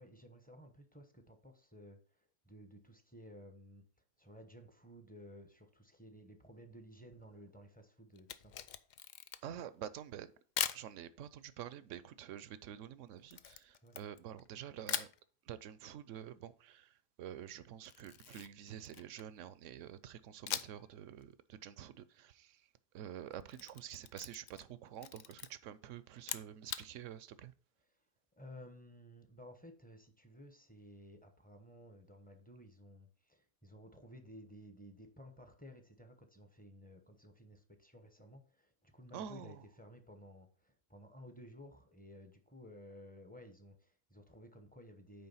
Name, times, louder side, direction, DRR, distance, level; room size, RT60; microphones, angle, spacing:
voice 1, 0.0-3.8 4.2-8.5 13.8-13.9 28.4-45.3, equal, 10° left, 0.9 m, -55 dB
Camera, 8.2-9.6 10.6-10.9 13.3-14.5 14.9-15.2 17.8-19.4 20.5-20.9 21.2-21.3 23.3-24.7 25.0-25.5 26.2-26.9, left 9 dB, 70° left, 0.4 m, -41 dB
voice 2, 9.4-10.3 10.7-15.1 15.4-27.5 39.1-39.6, right 10 dB, 75° right, 0.9 m, -48 dB
8.9 x 3.5 x 5.5 m
omnidirectional pair, 1.3 m